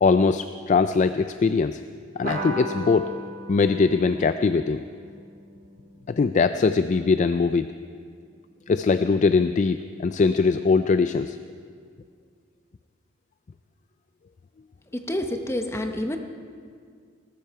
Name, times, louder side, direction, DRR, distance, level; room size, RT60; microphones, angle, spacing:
voice 1, 0.0-1.8 2.2-3.1 3.5-4.8 6.1-7.7 8.7-11.4, left 4 dB, 40° left, 11 dB, 0.3 m, -21 dB
sound 1, 2.2-7.2, right 1 dB, 50° right, 2.3 m, -37 dB
voice 2, 14.9-16.2, left 1 dB, 15° left, 5 dB, 0.8 m, -28 dB
19.0 x 13.0 x 4.7 m, 2.1 s
head